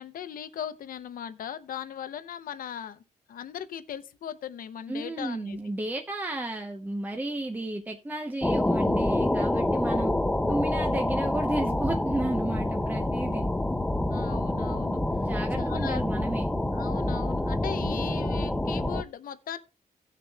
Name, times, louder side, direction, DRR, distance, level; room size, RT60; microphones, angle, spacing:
voice 1, 0.0-3.0 3.3-5.6 14.1-15.3 15.6-16.0 16.7-19.6, left 9 dB, 75° left, 0.8 m, -38 dB
voice 2, 4.9-10.1 10.5-13.5 15.2-16.5, right 2 dB, 10° right, 0.9 m, -32 dB
sound 1, 8.4-19.0, left 1 dB, 5° left, 0.5 m, -27 dB
17.5 x 6.7 x 2.4 m
wide cardioid pair, 145°, 15 cm